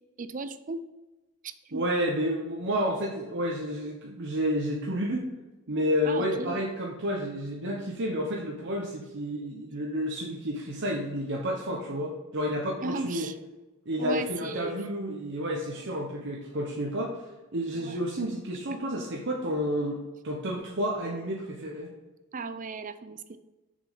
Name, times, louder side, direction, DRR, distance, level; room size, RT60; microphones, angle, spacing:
voice 1, 0.2-0.8 1.4-1.8 6.0-6.6 12.8-13.4 14.0-14.8 17.7-18.1 22.3-23.4, right 3 dB, 40° right, 11 dB, 0.5 m, -36 dB
voice 2, 1.7-5.2 5.7-13.3 13.9-17.2 17.5-21.9, equal, 55° right, -1 dB, 1.0 m, -30 dB
6.8 x 5.3 x 5.6 m, 1.1 s
head